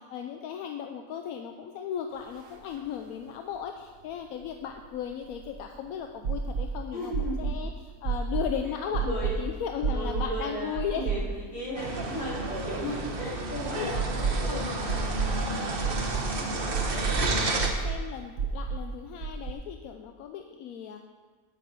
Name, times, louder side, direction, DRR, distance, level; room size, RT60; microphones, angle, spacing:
voice 1, 0.0-11.1 13.8-15.2 16.0-16.5 16.8-21.0, left 8 dB, 80° left, 4 dB, 1.0 m, -37 dB
sound 1, 2.4-2.5 2.8-2.9 4.4-5.6 6.2-6.7 7.1-7.6 8.0-8.5 8.9-9.4 9.8-10.3 10.8-11.5 11.8-11.9 13.9-14.5 14.9-15.3 15.8-16.3 16.7-17.2 17.6-18.0 18.4-18.8 19.2-19.5, right 6 dB, 75° right, 1.4 m, -29 dB
voice 2, 6.9-7.3 8.9-9.4 9.9-14.5 15.8-16.3, equal, 40° left, -7 dB, 3.4 m, -36 dB
sound 2, 11.7-17.7, right 2 dB, 40° right, 1.1 m, -31 dB
8.4 x 8.3 x 5.5 m, 1.5 s
omnidirectional pair, 1.5 m